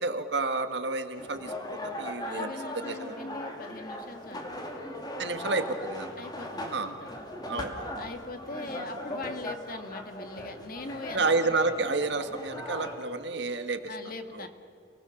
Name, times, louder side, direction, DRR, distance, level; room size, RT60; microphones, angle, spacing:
voice 1, 0.0-3.2 5.2-6.1 6.7-6.9 7.5-7.9 11.1-13.9 14.3-14.5, right 3 dB, 65° right, 8 dB, 1.8 m, -30 dB
sound 1, 1.2-13.0, left 1 dB, 20° left, 2.8 m, -39 dB
voice 2, 2.2-4.6 6.2-7.1 8.0-11.6 13.9-14.5, left 3 dB, 50° left, 7 dB, 1.9 m, -41 dB
29.5 x 20.0 x 7.1 m, 2.4 s
head